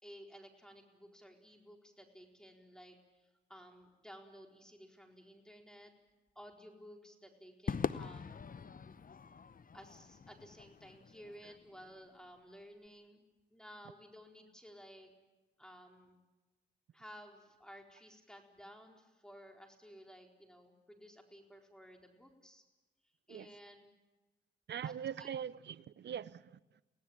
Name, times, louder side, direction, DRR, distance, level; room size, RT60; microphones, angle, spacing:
voice 1, 0.0-5.9 6.3-8.3 9.7-13.2 13.5-15.1 15.6-16.1 16.9-22.6 23.3-23.9 24.8-24.9 25.2-25.4, equal, 5° left, 2 dB, 4.2 m, -55 dB
Crowd / Fireworks, 7.7-12.2, left 6 dB, 50° left, 0.9 m, -42 dB
voice 2, 24.7-26.8, right 9 dB, 65° right, 17 dB, 0.7 m, -42 dB
24.0 x 17.5 x 8.8 m, 1.1 s
supercardioid pair, 45°, 19 cm